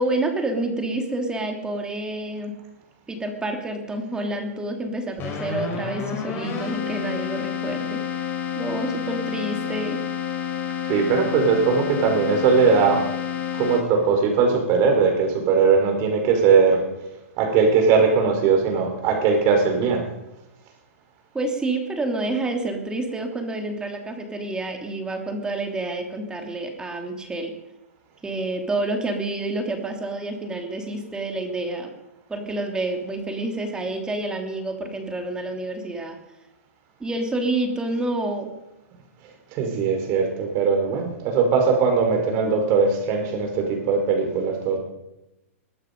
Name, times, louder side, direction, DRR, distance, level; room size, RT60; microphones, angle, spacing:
voice 1, 0.0-2.5 3.1-10.0 21.3-27.5 28.2-31.9 32.3-36.2 37.0-38.5, right 2 dB, 10° right, 3 dB, 2.9 m, -28 dB
Keyboard (musical), 5.2-14.2, left 8 dB, 30° left, 4.4 m, -29 dB
voice 2, 10.9-13.1 13.5-16.8 17.4-20.0 39.5-44.8, right 5 dB, 40° right, 3 dB, 5.0 m, -20 dB
22.0 x 12.0 x 5.4 m, 0.93 s
hypercardioid pair, 125°, 8 cm